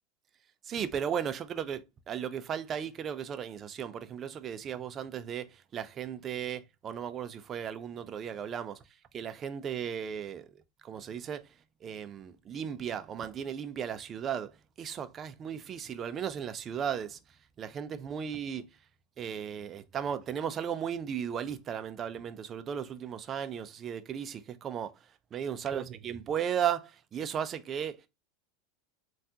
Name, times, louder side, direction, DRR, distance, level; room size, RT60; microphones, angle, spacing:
voice 1, 0.6-8.8 9.1-10.5 10.8-11.5 11.8-17.2 17.6-18.6 19.2-24.9 25.3-28.1, right 8 dB, 30° right, 0.4 m, -35 dB
3.4 x 2.3 x 2.7 m
supercardioid pair, 120°, 0 cm